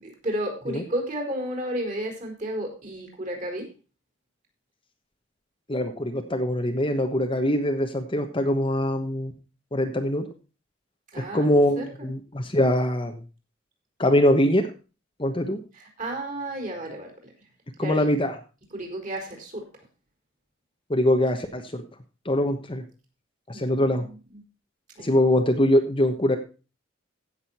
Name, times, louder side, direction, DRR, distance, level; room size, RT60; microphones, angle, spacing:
voice 1, 0.0-3.7 11.1-11.5 11.8-12.1 15.7-17.1 17.8-18.0 18.7-19.6 23.5-24.4 25.0-25.1, right 1 dB, 40° right, 3 dB, 4.4 m, -32 dB
voice 2, 5.7-9.3 9.7-10.3 11.2-13.2 14.0-14.7 15.2-15.6 17.8-18.3 20.9-21.8 22.2-22.8 23.5-24.0 25.0-26.4, left 1 dB, 25° left, 5 dB, 1.2 m, -23 dB
16.0 x 6.7 x 4.3 m, 0.33 s
head